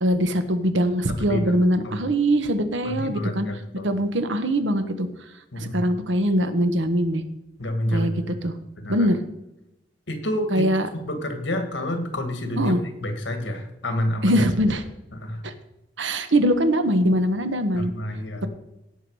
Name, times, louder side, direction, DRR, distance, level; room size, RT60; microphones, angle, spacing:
voice 1, 0.0-3.5 3.8-5.1 5.6-7.2 7.9-8.5 8.9-9.2 10.5-10.9 12.6-12.8 14.2-14.8 15.4-15.5 16.0-17.9 18.4-18.5, equal, 85° right, 9 dB, 1.2 m, -22 dB
voice 2, 1.1-1.4 1.8-2.0 2.8-3.9 5.5-5.8 7.6-8.4 8.8-9.1 10.1-10.7 11.0-12.7 13.0-14.4 15.1-15.4 17.7-18.5, left 1 dB, 70° left, 5 dB, 2.0 m, -28 dB
17.0 x 5.9 x 4.8 m, 0.92 s
head